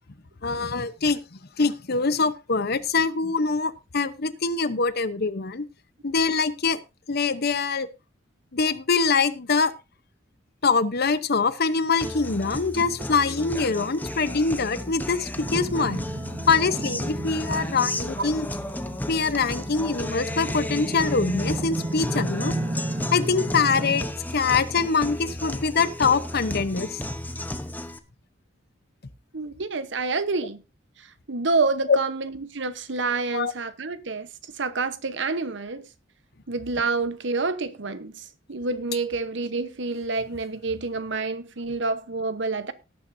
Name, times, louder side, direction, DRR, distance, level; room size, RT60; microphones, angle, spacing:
voice 1, 0.4-5.6 6.0-6.8 7.1-7.9 8.5-9.7 10.6-16.0 16.5-18.5 19.1-22.5 23.1-24.1 24.3-27.0 31.9-32.0 33.3-33.5, left 4 dB, 55° left, 0.9 m, -24 dB
Guitar, 12.0-28.0, left 1 dB, 10° left, 0.9 m, -33 dB
sound 1, 15.4-24.0, right 2 dB, 30° right, 0.7 m, -33 dB
voice 2, 29.3-30.6 31.0-35.9 36.5-42.7, right 3 dB, 65° right, 1.0 m, -28 dB
18.5 x 9.1 x 2.7 m
head